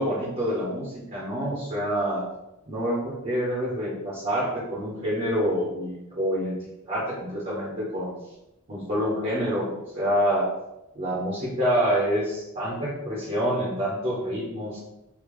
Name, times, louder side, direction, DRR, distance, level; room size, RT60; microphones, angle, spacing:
voice 1, 0.0-2.3 2.7-8.2 8.7-10.5 10.9-14.8, equal, 35° right, -7 dB, 1.0 m, -27 dB
3.5 x 2.8 x 3.1 m, 0.90 s
head